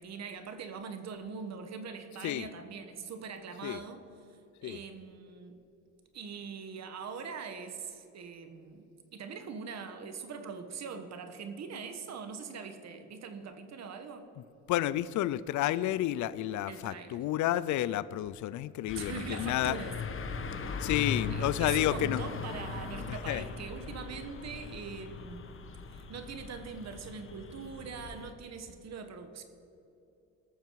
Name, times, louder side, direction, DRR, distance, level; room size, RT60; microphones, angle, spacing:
voice 1, 0.0-4.0 4.6-5.6 6.1-8.8 9.1-14.3 16.7-17.2 18.9-20.0 21.3-25.6 25.9-29.4, right 5 dB, 60° right, 8 dB, 1.3 m, -42 dB
voice 2, 14.7-19.8 20.8-22.2 23.1-23.4, left 13 dB, 75° left, 18 dB, 0.5 m, -30 dB
sound 1, 18.9-28.3, left 4 dB, 45° left, 1.0 m, -39 dB
19.0 x 6.8 x 4.7 m, 2.9 s
cardioid pair, 90°, 30 cm